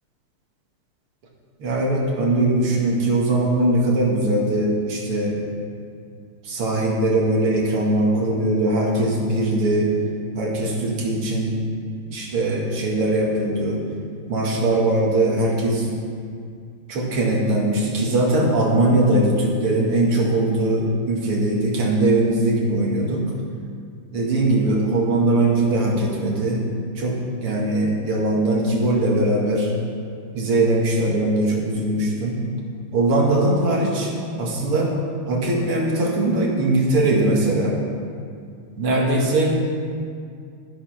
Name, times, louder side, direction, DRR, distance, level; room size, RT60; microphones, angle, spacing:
voice 1, 1.6-5.4 6.4-9.9 10.3-11.6 12.1-13.8 14.3-15.9 16.9-23.2 24.1-26.6 26.9-29.7 30.3-32.4 32.9-34.1 34.4-34.9 35.3-37.8 38.8-39.6, right 2 dB, 85° right, -2 dB, 2.7 m, -20 dB
11.0 x 9.8 x 5.8 m, 2.2 s
omnidirectional pair, 2.4 m